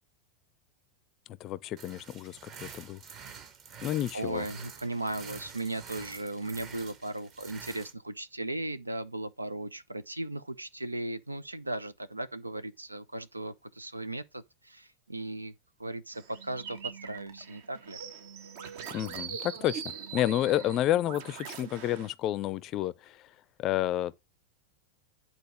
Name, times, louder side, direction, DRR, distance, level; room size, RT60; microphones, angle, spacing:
voice 1, 1.4-3.0 3.8-4.5 18.9-23.3 23.6-24.2, left 13 dB, 35° left, 0.5 m, -30 dB
sound 1, 1.8-7.9, right 6 dB, 35° right, 1.3 m, -47 dB
voice 2, 4.1-15.5 15.8-18.0, right 2 dB, 80° right, 0.6 m, -37 dB
sound 2, 16.1-22.1, right 7 dB, 50° right, 1.2 m, -42 dB
9.1 x 4.0 x 6.2 m
figure-of-eight pair, 90°, 0 cm